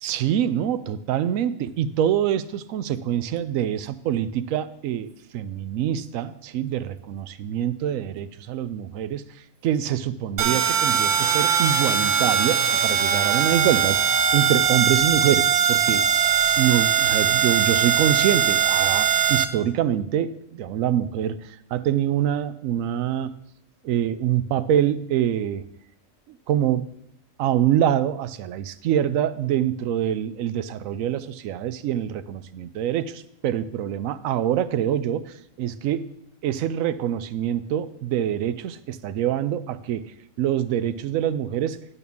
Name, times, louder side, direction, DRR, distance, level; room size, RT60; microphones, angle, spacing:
voice 1, 0.0-9.2 9.6-16.1 16.6-23.3 23.8-25.6 26.5-26.9 27.4-36.1 36.4-40.0 40.4-41.8, right 10 dB, 85° right, 14 dB, 1.0 m, -25 dB
sound 1, 10.4-19.4, right 8 dB, 60° right, 0.9 m, -21 dB
10.5 x 4.2 x 6.9 m, 0.75 s
omnidirectional pair, 1.4 m